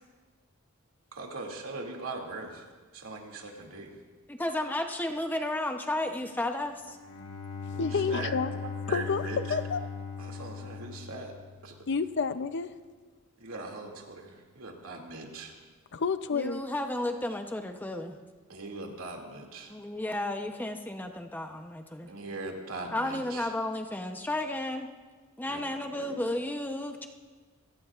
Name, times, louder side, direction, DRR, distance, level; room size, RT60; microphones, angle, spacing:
voice 1, 1.1-2.7 2.9-3.9 7.7-8.4 8.9-9.6 10.2-11.3 11.6-11.7 13.4-15.6 18.5-19.8 22.0-23.5 25.5-26.2, right 3 dB, 70° right, 2.5 m, -41 dB
voice 2, 4.3-7.0 16.3-18.2 19.7-22.1 22.9-24.9 25.4-27.1, left 1 dB, 10° left, 0.8 m, -33 dB
Bowed string instrument, 6.8-11.8, left 5 dB, 80° left, 1.6 m, -39 dB
voice 3, 7.8-8.5 8.9-9.8 11.9-12.7 15.9-16.6, left 5 dB, 55° left, 0.6 m, -29 dB
27.5 x 18.0 x 2.5 m
head